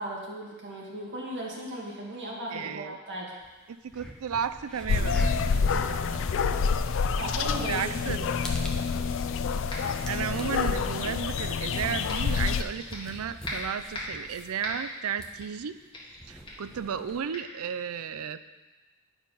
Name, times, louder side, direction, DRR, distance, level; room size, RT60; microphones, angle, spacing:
voice 1, 0.0-3.3 5.7-6.4 7.1-8.2, right 1 dB, 55° right, -3 dB, 2.1 m, -37 dB
voice 2, 2.5-3.0 3.7-5.3 7.7-8.2 10.1-15.7 16.3-18.4, right 7 dB, 75° right, 12 dB, 0.4 m, -33 dB
sound 1, 3.4-3.5 3.8-17.2, equal, 5° left, 1.0 m, -43 dB
sound 2, 4.9-12.6, left 5 dB, 60° left, 0.4 m, -27 dB
sound 3, 9.7-10.0 10.4-11.6 12.1-13.2 13.4-14.2 14.6-15.0 15.4-15.7 15.9-16.2 16.5-16.7 17.3-17.4, left 1 dB, 25° left, 1.8 m, -39 dB
10.0 x 4.7 x 5.5 m, 1.2 s
head